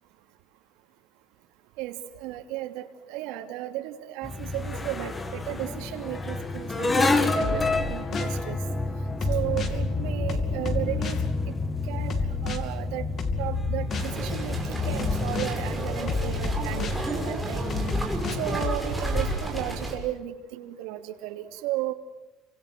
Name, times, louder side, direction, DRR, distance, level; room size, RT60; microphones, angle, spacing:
voice 1, 1.8-8.6 9.3-11.2 11.5-11.6 11.9-13.1 13.3-17.7 18.3-21.9, right 14 dB, 80° right, 4 dB, 3.0 m, -34 dB
sound 1, 4.2-18.6, left 3 dB, 15° left, 2.0 m, -29 dB
sound 2, 7.4-8.4 9.2-9.8 10.3-11.3 12.1-12.6 13.2-14.2 15.0-15.6 16.1-17.0 17.7-18.8, left 4 dB, 35° left, 2.7 m, -31 dB
sound 3, 13.9-19.9, right 1 dB, ahead, 6.0 m, -31 dB
30.0 x 25.5 x 7.8 m, 1.1 s
cardioid pair, 155°, 0 cm